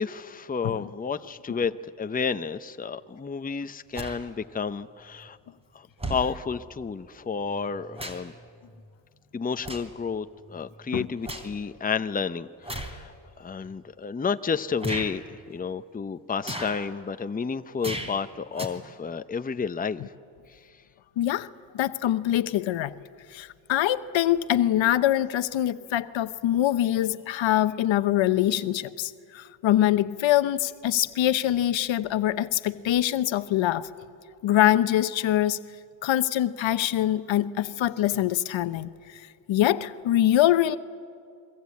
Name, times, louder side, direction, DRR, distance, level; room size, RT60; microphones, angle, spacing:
voice 1, 0.0-1.7 2.0-5.4 5.7-8.3 9.3-13.1 13.4-20.0, left 5 dB, 20° left, 0.7 m, -31 dB
sound 1, 3.9-4.2 5.2-5.3 6.0-6.3 7.5-8.4 8.7-8.9 9.6-10.0 10.5-11.5 12.6-13.0 13.7-13.8 14.8-15.1 16.4-16.9 17.8-18.2 18.5-18.7, right 1 dB, 10° right, 3.4 m, -35 dB
voice 2, 21.2-21.5 21.7-22.9 23.3-33.9 34.4-35.6 36.0-38.9 39.5-40.8, left 13 dB, 70° left, 0.9 m, -24 dB
29.0 x 23.0 x 8.5 m
cardioid pair, 95°, 47 cm